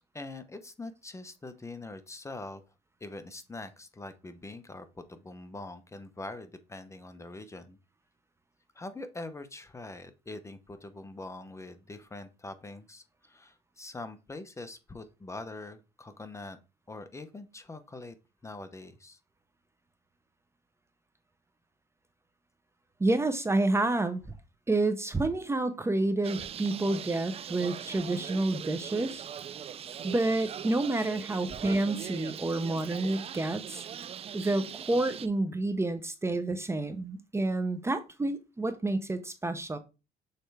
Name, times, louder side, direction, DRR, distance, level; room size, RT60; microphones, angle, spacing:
voice 1, 0.1-2.6 3.0-7.8 8.7-16.6 16.9-18.1 18.4-19.2, left 2 dB, 15° left, 0.8 m, -43 dB
voice 2, 23.0-24.2 24.7-29.3 30.0-33.9 34.3-39.8, right 2 dB, 15° right, 0.7 m, -29 dB
Bird, 26.2-35.3, right 9 dB, 35° right, 0.4 m, -41 dB
6.6 x 4.4 x 3.4 m
cardioid pair, 110°, 17 cm